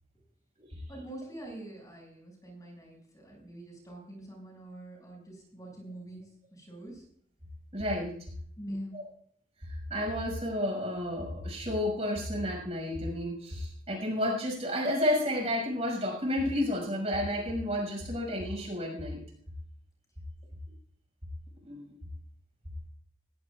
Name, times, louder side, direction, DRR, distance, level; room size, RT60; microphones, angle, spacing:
voice 1, 0.9-7.0 8.6-9.0, right 1 dB, 20° left, -1 dB, 6.5 m, -44 dB
voice 2, 7.7-8.1 8.9-9.0 9.6-19.2 21.6-21.9, left 1 dB, 35° right, 0 dB, 6.5 m, -31 dB
20.0 x 20.0 x 2.5 m, 0.62 s
head